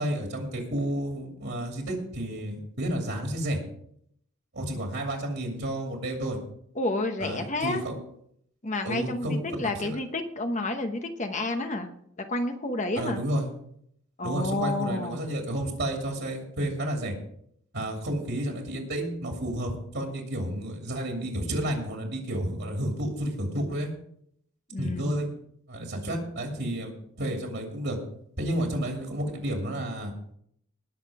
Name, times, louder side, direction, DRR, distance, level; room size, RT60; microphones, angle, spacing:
voice 1, 0.0-3.6 4.5-6.4 7.2-7.9 8.8-10.0 13.0-13.5 14.2-17.1 17.7-23.9 24.8-25.3 25.7-26.9 27.2-28.0 28.4-30.1, right 1 dB, 55° right, 1 dB, 2.6 m, -31 dB
voice 2, 6.8-7.8 8.6-11.9 12.3-13.2 14.2-15.2 24.7-25.3, left 2 dB, 35° left, 6 dB, 1.0 m, -30 dB
19.5 x 6.6 x 4.9 m, 0.70 s
head